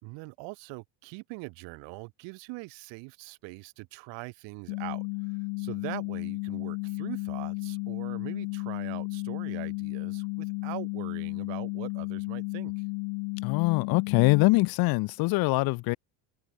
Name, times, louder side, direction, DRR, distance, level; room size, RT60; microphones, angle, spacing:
voice 1, 0.0-12.8, right 28 dB, 65° right, 6.5 m, -42 dB
sound 1, 4.7-14.7, left 40 dB or more, 75° left, 1.8 m, -33 dB
voice 2, 13.4-16.0, left 24 dB, 50° left, 0.8 m, -23 dB
cardioid pair, 175°, 46 cm